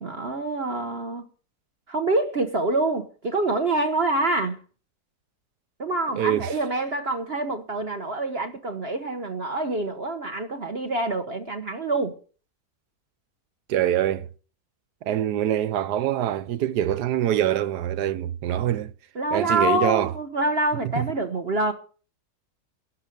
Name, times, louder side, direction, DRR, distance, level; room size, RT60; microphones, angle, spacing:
voice 1, 0.0-1.2 1.9-4.6 5.8-12.1 19.1-21.7, right 2 dB, 40° right, 1.4 m, -26 dB
voice 2, 6.2-6.5 13.7-14.3 15.0-18.9 19.3-20.1 20.8-21.1, right 11 dB, 85° right, 1.4 m, -24 dB
12.0 x 6.4 x 9.1 m
omnidirectional pair, 1.7 m